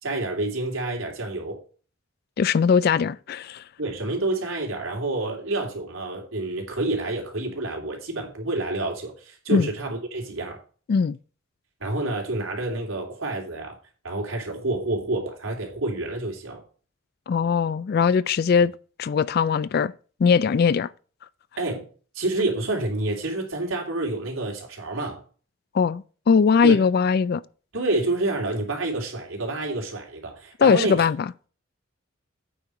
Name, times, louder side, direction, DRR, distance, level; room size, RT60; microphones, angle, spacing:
voice 1, 0.0-1.6 3.8-10.6 11.8-13.8 14.0-16.6 21.6-21.8 22.1-25.2 26.6-26.8 27.7-31.1, right 2 dB, 90° right, 3.1 m, -28 dB
voice 2, 2.4-3.6 9.5-9.7 10.9-11.2 17.3-18.7 19.0-19.9 20.2-20.9 25.7-27.4 30.6-31.3, left 6 dB, 50° left, 0.3 m, -20 dB
8.7 x 4.7 x 6.6 m
head